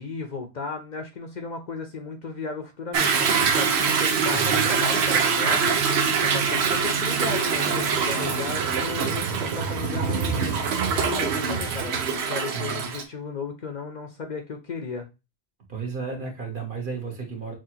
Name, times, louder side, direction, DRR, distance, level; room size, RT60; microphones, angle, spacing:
voice 1, 0.0-5.8 6.1-15.1, left 4 dB, 50° left, 0.7 m, -35 dB
Toilet flush / Drip / Trickle dribble, 2.9-13.0, right 6 dB, 85° right, 1.0 m, -24 dB
voice 2, 4.3-4.7 8.9-9.4 12.5-12.9 15.7-17.6, right 5 dB, 55° right, 1.3 m, -34 dB
6.0 x 2.4 x 2.8 m
omnidirectional pair, 1.1 m